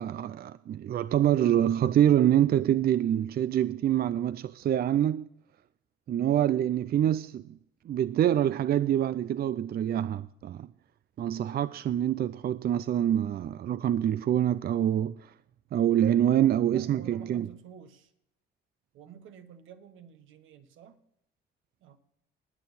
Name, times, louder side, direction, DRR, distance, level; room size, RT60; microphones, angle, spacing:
voice 1, 0.0-5.3 6.1-7.6 7.9-10.7 11.2-15.3 15.7-17.5, right 11 dB, 50° right, 0.4 m, -26 dB
voice 2, 16.7-18.1 18.9-21.0 21.8-22.0, right 8 dB, 85° right, 1.3 m, -50 dB
20.5 x 7.0 x 4.2 m
cardioid pair, 90°, 20 cm